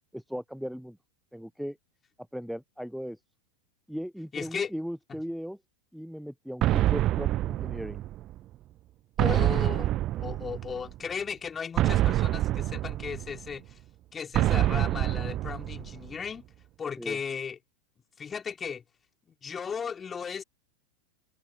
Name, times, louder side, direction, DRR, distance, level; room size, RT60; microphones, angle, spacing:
voice 1, 0.1-1.0 1.3-1.8 2.3-3.2 3.9-5.6 5.9-8.0 17.0-17.2, equal, ahead, 0.7 m, -37 dB
voice 2, 4.3-4.7 5.1-5.2 9.2-13.8 14.1-16.4 16.8-17.6 18.2-18.8 19.4-20.4, left 6 dB, 20° left, 4.1 m, -36 dB
sound 1, 6.6-8.4 9.2-10.9 11.8-13.5 14.3-16.1, right 14 dB, 35° right, 0.7 m, -26 dB
figure-of-eight pair, 90°, 0 cm